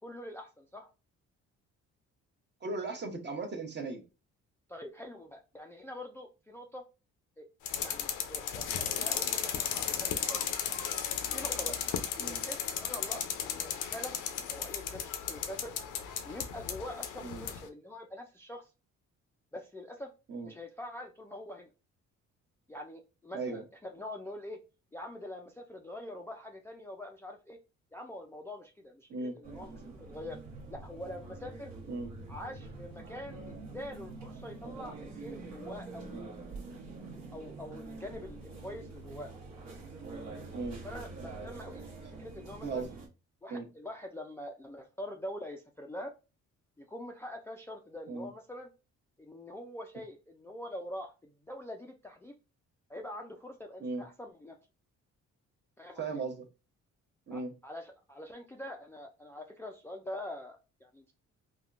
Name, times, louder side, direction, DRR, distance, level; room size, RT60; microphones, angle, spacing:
voice 1, 0.0-0.9 4.7-6.8 7.4-7.5 7.8-10.4 11.3-11.8 12.2-14.1 14.5-15.7 16.2-18.7 19.5-20.1 20.4-21.7 22.7-24.6 24.9-27.6 27.9-30.4 30.7-31.7 32.3-36.2 37.3-39.3 40.8-41.8 42.2-42.8 43.4-46.1 46.8-48.7 49.2-52.3 52.9-54.6 55.8-56.0 57.3-61.1, left 1 dB, 10° left, 2 dB, 0.3 m, -44 dB
voice 2, 2.6-4.0 12.2-12.4 17.2-17.4 20.3-20.5 23.3-23.6 29.1-29.4 31.9-32.1 34.6-34.8 36.1-36.3 40.5-40.8 42.0-42.1 42.6-43.0 43.5-43.7 48.1-48.3 53.8-54.0 56.0-56.5 57.3-57.5, right 3 dB, 35° right, 5 dB, 0.8 m, -37 dB
sound 1, 7.7-17.6, left 8 dB, 85° left, 0.5 m, -35 dB
sound 2, 29.4-43.1, right 3 dB, 65° right, 1.1 m, -46 dB
3.5 x 2.2 x 2.4 m, 0.30 s
cardioid pair, 90°, 30 cm